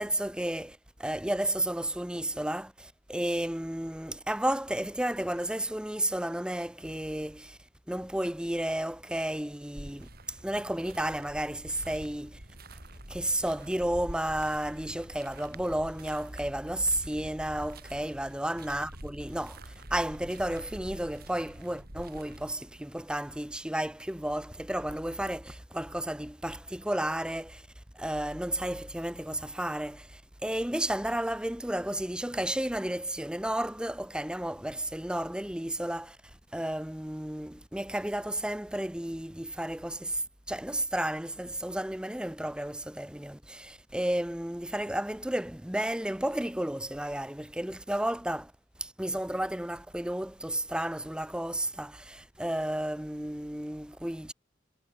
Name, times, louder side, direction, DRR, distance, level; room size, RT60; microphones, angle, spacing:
voice 1, 0.0-7.6 7.9-12.4 13.1-27.7 27.9-36.2 36.5-48.5 48.8-54.3, right 1 dB, 5° right, 0.7 m, -32 dB
sound 1, 9.7-22.5, right 1 dB, 55° right, 5.0 m, -46 dB
head